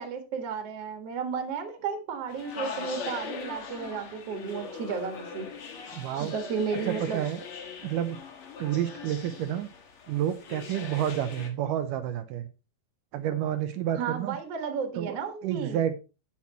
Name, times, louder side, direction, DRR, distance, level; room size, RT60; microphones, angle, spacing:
voice 1, 0.0-5.5 6.3-7.2 14.0-15.8, right 6 dB, 50° right, 5 dB, 2.2 m, -33 dB
sound 1, 2.3-11.5, left 5 dB, 50° left, 1.7 m, -41 dB
voice 2, 5.9-6.3 6.9-7.4 7.8-8.2 8.6-9.7 10.1-12.4 13.1-14.4 15.0-15.2 15.4-16.0, right 11 dB, 80° right, 10 dB, 2.1 m, -29 dB
14.5 x 5.9 x 3.0 m, 0.30 s
omnidirectional pair, 4.2 m